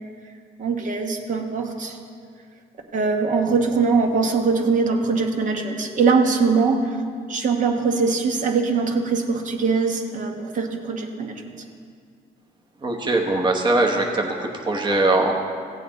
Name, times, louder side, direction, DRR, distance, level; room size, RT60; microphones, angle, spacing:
voice 1, 0.6-2.0 2.9-7.0 7.3-11.4, right 4 dB, 50° right, 3 dB, 1.1 m, -22 dB
voice 2, 12.8-15.3, right 2 dB, 25° right, 2 dB, 1.0 m, -21 dB
15.5 x 8.4 x 4.0 m, 2.2 s
cardioid pair, 110°, 17 cm